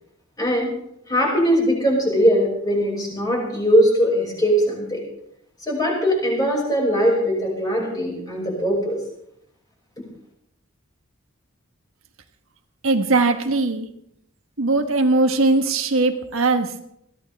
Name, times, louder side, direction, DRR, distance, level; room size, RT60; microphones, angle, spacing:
voice 1, 0.4-0.7 1.1-5.0 5.7-9.0, equal, 15° left, -2 dB, 6.0 m, -20 dB
voice 2, 12.8-13.9 14.6-16.7, right 3 dB, 75° right, 5 dB, 1.4 m, -20 dB
21.5 x 16.0 x 3.5 m, 0.75 s
head